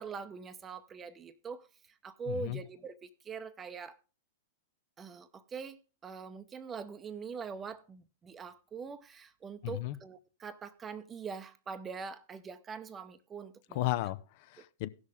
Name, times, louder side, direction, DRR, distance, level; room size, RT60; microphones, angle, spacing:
voice 1, 0.0-1.7 2.0-4.0 5.0-13.9, right 5 dB, 20° right, 0.7 m, -43 dB
voice 2, 2.3-2.6 9.6-10.0 13.7-14.9, left 16 dB, 50° left, 0.6 m, -34 dB
16.0 x 6.5 x 3.6 m
hypercardioid pair, 105°, 0 cm